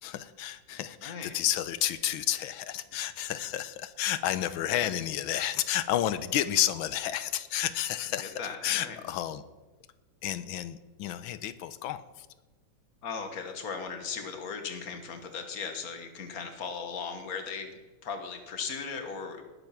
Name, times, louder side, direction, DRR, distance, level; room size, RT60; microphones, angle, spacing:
voice 1, 0.0-8.3 8.6-9.4 10.2-12.3, left 12 dB, 80° left, 13 dB, 1.5 m, -31 dB
voice 2, 1.0-1.4 4.8-5.0 8.2-9.0 13.0-17.7 18.0-19.4, left 5 dB, 50° left, 6 dB, 1.8 m, -37 dB
19.5 x 8.1 x 5.9 m, 1.2 s
omnidirectional pair, 2.2 m